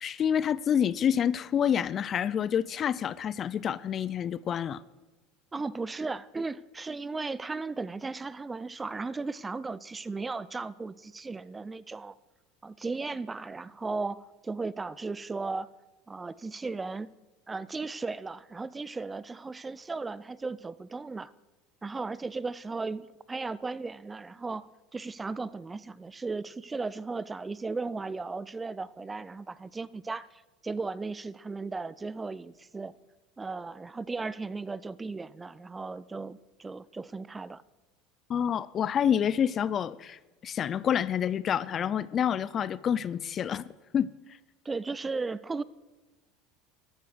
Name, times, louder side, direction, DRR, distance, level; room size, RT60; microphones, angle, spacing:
voice 1, 0.0-4.8 38.3-43.6 43.9-44.1, left 8 dB, 40° left, 0.5 m, -28 dB
voice 2, 5.5-12.2 12.6-15.7 16.1-17.1 17.5-21.3 21.8-32.9 33.4-37.6 44.6-45.6, right 3 dB, 20° right, 0.5 m, -36 dB
14.0 x 12.0 x 6.3 m
hypercardioid pair, 90°, 0 cm